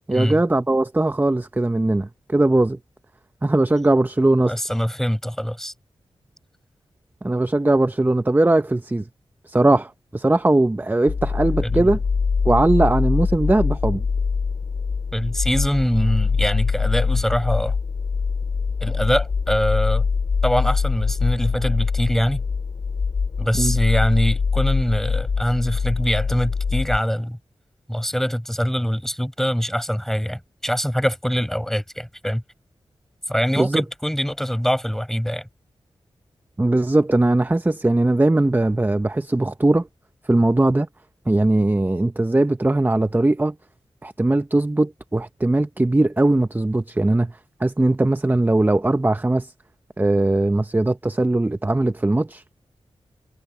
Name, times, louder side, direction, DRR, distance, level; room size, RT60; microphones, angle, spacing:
voice 1, 0.1-2.8 3.4-4.5 7.2-9.1 9.5-12.0 12.4-14.0 23.6-23.8 33.6-33.8 36.6-39.9 40.2-40.9 41.3-43.5 44.0-49.5 50.0-52.4, right 2 dB, 20° right, 0.8 m, -19 dB
voice 2, 4.4-5.7 11.6-11.9 15.1-17.7 18.8-20.1 20.4-22.4 23.4-27.4 27.9-32.4 33.3-35.4, equal, 5° left, 6.9 m, -23 dB
sound 1, 11.1-27.0, left 5 dB, 75° left, 2.6 m, -23 dB
cardioid pair, 65°, 10 cm